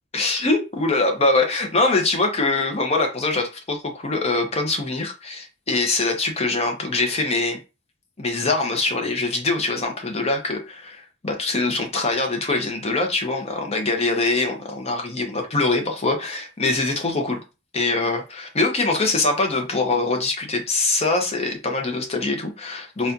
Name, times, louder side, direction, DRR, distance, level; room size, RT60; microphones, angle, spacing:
voice 1, 0.1-7.6 8.2-17.4 17.7-23.1, left 3 dB, 30° left, 0.8 m, -23 dB
4.1 x 2.3 x 2.6 m
head